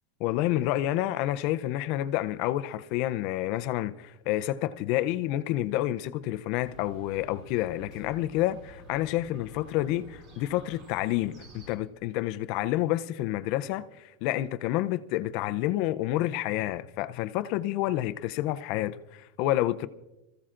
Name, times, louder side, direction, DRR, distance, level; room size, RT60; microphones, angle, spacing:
voice 1, 0.2-13.8 14.2-19.9, left 14 dB, 40° left, 0.5 m, -29 dB
Chirp tweet, 6.6-11.8, right 1 dB, 30° right, 2.7 m, -50 dB
25.5 x 15.0 x 2.5 m
supercardioid pair, 170°, 0 cm